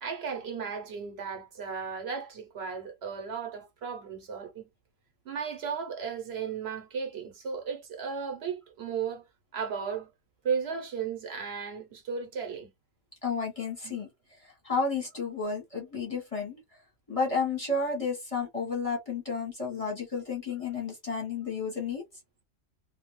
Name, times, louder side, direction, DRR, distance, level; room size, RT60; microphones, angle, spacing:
voice 1, 0.0-4.7 5.2-9.3 9.5-10.1 10.4-12.7 13.8-14.0, right 6 dB, 60° right, 0.9 m, -35 dB
voice 2, 13.2-16.6 17.1-22.0, left 4 dB, 30° left, 0.8 m, -32 dB
2.3 x 2.1 x 3.0 m
omnidirectional pair, 1.3 m